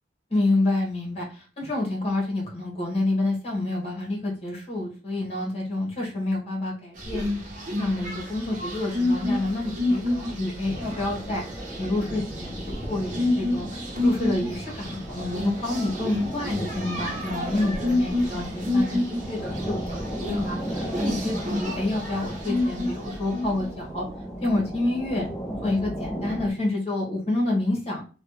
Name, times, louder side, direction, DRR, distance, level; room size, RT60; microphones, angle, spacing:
voice 1, 0.3-7.2 7.8-11.4 11.8-12.6 12.9-19.0 19.3-24.0 24.4-25.3 25.6-28.1, left 2 dB, 35° left, -2 dB, 1.4 m, -28 dB
sound 1, 7.0-23.7, left 1 dB, 45° right, 1.0 m, -29 dB
sound 2, 10.6-26.5, equal, 5° left, 0.5 m, -35 dB
3.2 x 2.4 x 3.1 m, 0.36 s
head